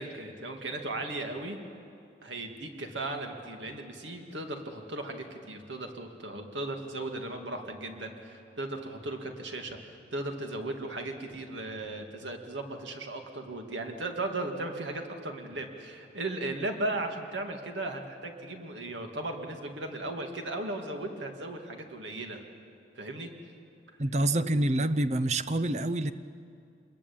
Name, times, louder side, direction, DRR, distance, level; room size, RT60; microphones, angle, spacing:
voice 1, 0.0-1.6 2.2-22.4 23.0-23.3, right 2 dB, 85° right, 3 dB, 2.6 m, -36 dB
voice 2, 24.0-26.1, right 1 dB, 35° right, 14 dB, 0.7 m, -27 dB
27.0 x 21.5 x 8.8 m, 2.5 s
head